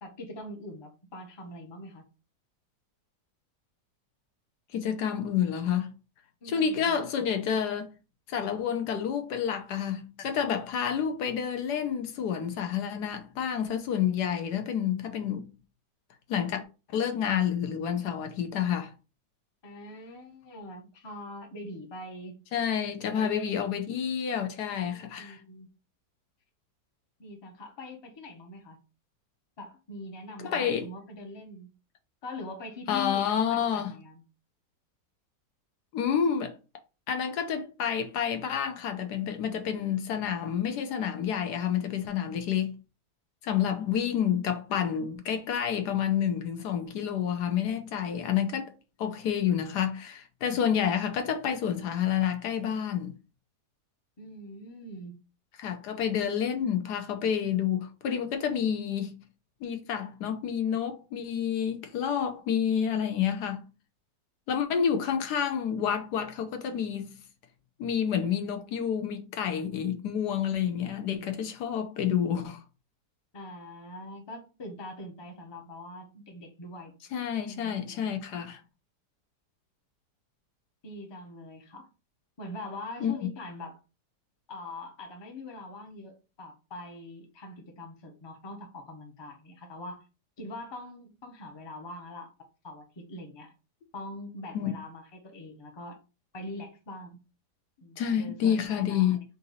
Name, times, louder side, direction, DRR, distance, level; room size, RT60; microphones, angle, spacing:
voice 1, 0.0-2.0 6.4-7.0 19.6-22.4 23.1-23.7 24.9-25.7 27.2-28.8 29.6-31.7 32.2-34.2 54.2-55.2 73.3-76.9 77.5-78.2 80.8-81.9 82.4-83.8 84.5-90.0 90.4-92.3 92.6-93.5 93.9-96.0 96.3-97.2 97.8-99.2, left 2 dB, 25° left, 0.6 m, -43 dB
voice 2, 4.7-5.9 6.4-7.9 8.3-15.5 16.3-16.6 16.9-18.9 22.5-25.4 30.4-30.9 32.9-34.0 35.9-36.6 37.1-42.7 43.4-48.7 49.0-53.2 55.6-59.2 59.6-63.7 64.5-67.2 67.8-72.6 77.1-78.6 83.0-83.1 94.5-94.7 98.0-99.2, left 8 dB, 75° left, 1.3 m, -29 dB
3.9 x 2.6 x 4.0 m
omnidirectional pair, 1.8 m